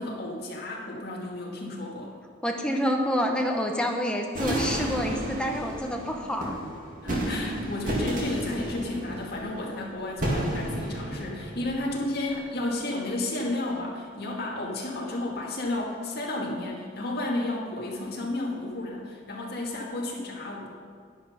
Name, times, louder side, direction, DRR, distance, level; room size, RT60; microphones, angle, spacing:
voice 1, 0.0-2.1 7.0-20.7, left 2 dB, 50° left, -3 dB, 2.1 m, -32 dB
voice 2, 2.4-6.6, equal, 5° left, 2 dB, 0.9 m, -28 dB
sound 1, 4.3-12.6, right 1 dB, 40° right, 2.2 m, -32 dB
10.5 x 9.8 x 5.1 m, 2.1 s
head